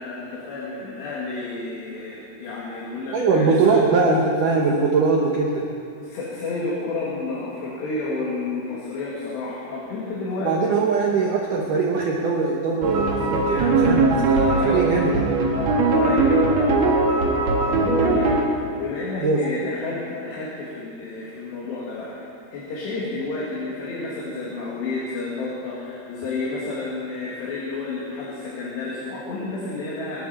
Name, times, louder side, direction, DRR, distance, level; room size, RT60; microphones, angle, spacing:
voice 1, 0.0-3.8 6.0-10.7 14.4-14.9 15.6-30.2, left 3 dB, 65° left, -6 dB, 4.1 m, -31 dB
voice 2, 3.1-5.7 10.4-15.1 19.2-19.4, right 4 dB, 90° right, -1 dB, 1.8 m, -21 dB
sound 1, 12.8-18.4, right 3 dB, 65° right, 1.7 m, -20 dB
26.0 x 12.0 x 4.4 m, 2.6 s
omnidirectional pair, 5.6 m